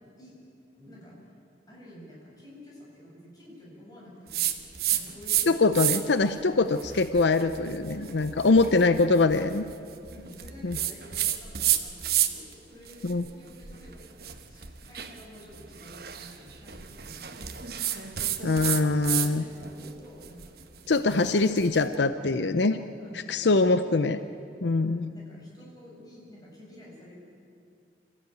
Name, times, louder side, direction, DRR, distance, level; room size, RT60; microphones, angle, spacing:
voice 1, 0.7-1.2 1.7-5.6 6.4-6.6 7.9-8.2 8.6-8.9 10.1-14.2 14.5-18.0 18.4-20.5 20.9-21.1 22.3-24.2 24.7-27.2, equal, 20° left, -4 dB, 7.1 m, -49 dB
sound 1, 4.3-5.5 5.7-6.2 6.7-12.5 12.9-19.3 19.6-21.8, right 11 dB, 60° right, 1.2 m, -31 dB
voice 2, 5.5-6.7 7.0-9.6 10.6-10.8 13.0-13.3 18.4-19.4 20.9-22.8 23.1-24.2 24.6-25.1, left 3 dB, 80° left, 11 dB, 0.7 m, -23 dB
26.0 x 15.0 x 9.2 m, 2.5 s
head